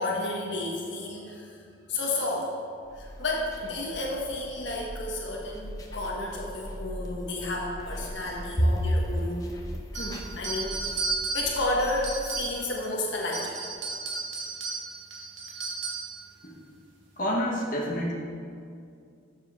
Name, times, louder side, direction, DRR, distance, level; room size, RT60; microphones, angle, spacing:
voice 1, 0.0-1.6 1.9-2.5 2.9-9.4 9.9-11.1 11.3-13.7, left 2 dB, 65° left, -2 dB, 1.4 m, -31 dB
sound 1, 2.8-12.7, equal, 20° left, 0.8 m, -42 dB
sound 2, 9.9-12.8 13.2-16.2, right 4 dB, 70° right, 1.9 m, -34 dB
voice 2, 17.2-18.1, equal, 45° left, -3 dB, 1.4 m, -28 dB
12.5 x 7.3 x 3.7 m, 2.3 s
head